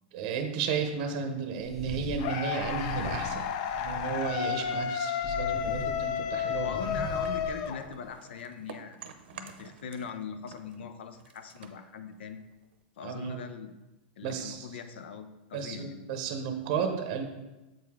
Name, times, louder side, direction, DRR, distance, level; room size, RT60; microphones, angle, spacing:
voice 1, 0.1-3.5 3.7-6.7 13.0-13.4 14.2-14.7 15.5-17.2, right 6 dB, 40° right, 5 dB, 0.7 m, -33 dB
sound 1, 1.6-2.2 2.6-4.7 5.2-8.1, equal, 10° left, 0.8 m, -40 dB
sound 2, 2.2-8.3, left 8 dB, 40° left, 0.4 m, -32 dB
voice 2, 6.6-9.0 9.3-12.4 13.0-13.7 14.2-16.0, left 6 dB, 85° left, 9 dB, 0.7 m, -41 dB
sound 3, 7.2-10.2 10.4-12.8, right 7 dB, 80° right, 0.7 m, -49 dB
7.7 x 4.8 x 3.5 m, 1.0 s
supercardioid pair, 170°, 6 cm